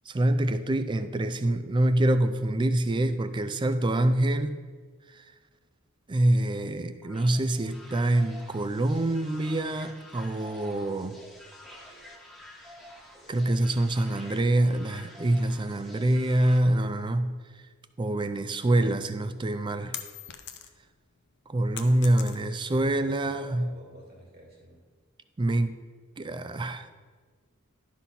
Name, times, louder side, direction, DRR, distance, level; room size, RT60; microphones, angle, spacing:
voice 1, 0.1-4.6 6.1-11.2 13.3-17.4 18.0-20.0 21.5-23.7 25.4-25.8 26.2-26.9, right 1 dB, 20° right, 0.4 m, -25 dB
sound 1, 7.0-16.6, left 1 dB, ahead, 1.3 m, -49 dB
sound 2, 19.1-20.9 21.3-22.8, left 10 dB, 55° left, 0.7 m, -41 dB
voice 2, 22.1-24.9, equal, 50° right, 2.3 m, -51 dB
11.5 x 4.2 x 5.5 m
head